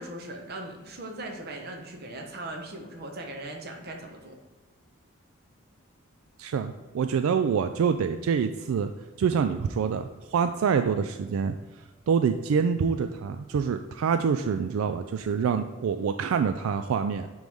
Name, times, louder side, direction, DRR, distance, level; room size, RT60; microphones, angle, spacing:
voice 1, 0.0-4.4, right 1 dB, 50° right, 2 dB, 0.9 m, -39 dB
voice 2, 6.4-8.9 9.2-17.3, right 6 dB, 85° right, 8 dB, 0.3 m, -26 dB
9.1 x 3.2 x 3.5 m, 1.3 s
head